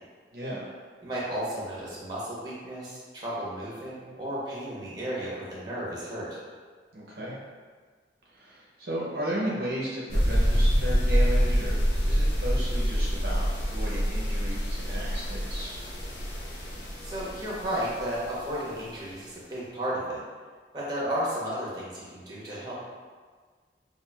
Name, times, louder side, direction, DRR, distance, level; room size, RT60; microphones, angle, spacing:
voice 1, 0.3-0.7 6.9-7.3 8.3-15.7, equal, 60° right, -6 dB, 0.6 m, -34 dB
voice 2, 1.0-6.4 17.0-20.2 20.7-22.8, right 1 dB, 25° right, -6 dB, 0.9 m, -33 dB
sound 1, 10.1-18.5, equal, 75° left, 0.7 m, -26 dB
5.6 x 2.4 x 2.2 m, 1.6 s
head